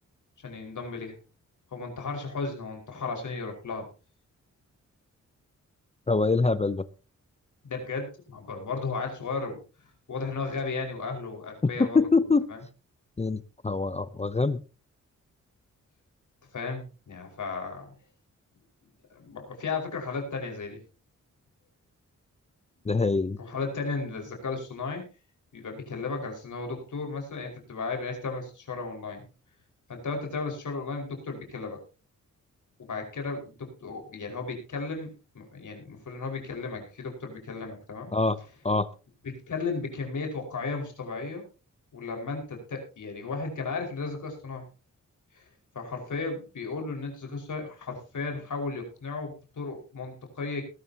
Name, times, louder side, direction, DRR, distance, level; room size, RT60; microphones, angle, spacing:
voice 1, 0.4-1.2 1.7-3.9 7.6-9.6 10.1-12.0 12.5-12.6 16.5-17.9 19.1-20.8 23.4-25.0 25.5-29.2 29.9-31.8 32.8-38.1 39.2-41.4 41.9-44.7 45.3-45.4 45.7-50.6, left 4 dB, 70° left, 3 dB, 5.3 m, -34 dB
voice 2, 6.1-6.8 11.8-12.5 13.2-14.6 22.9-23.4 38.1-38.4 38.6-38.9, left 3 dB, 20° left, 14 dB, 0.7 m, -24 dB
19.5 x 12.5 x 2.9 m, 0.33 s
wide cardioid pair, 95°, 31 cm